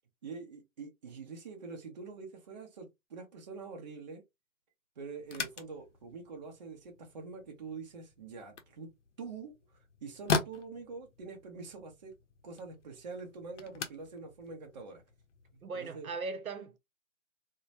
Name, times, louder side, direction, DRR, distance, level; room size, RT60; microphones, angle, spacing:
voice 1, 0.2-4.2 5.0-8.9 9.2-9.5 10.0-12.1 12.4-15.0 15.5-16.1, right 4 dB, 35° right, 0.6 m, -45 dB
sound 1, 5.2-15.7, left 5 dB, 60° left, 0.6 m, -41 dB
voice 2, 15.6-16.8, right 4 dB, 85° right, 0.7 m, -38 dB
2.1 x 2.1 x 2.7 m
figure-of-eight pair, 145°, 41 cm